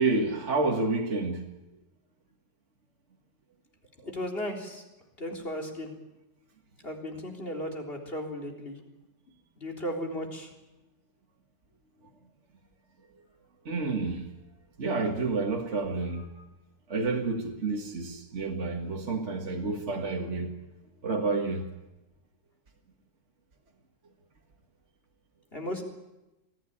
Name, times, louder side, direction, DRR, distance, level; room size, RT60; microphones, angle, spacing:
voice 1, 0.0-1.4 13.7-14.2 14.8-16.3 16.9-20.6 21.0-21.7, right 3 dB, 40° right, 2.0 m, -29 dB
voice 2, 4.0-4.8 5.2-5.9 6.8-8.8 9.6-10.5 25.5-25.8, equal, 30° left, 3.9 m, -35 dB
23.5 x 15.5 x 9.9 m
omnidirectional pair, 1.9 m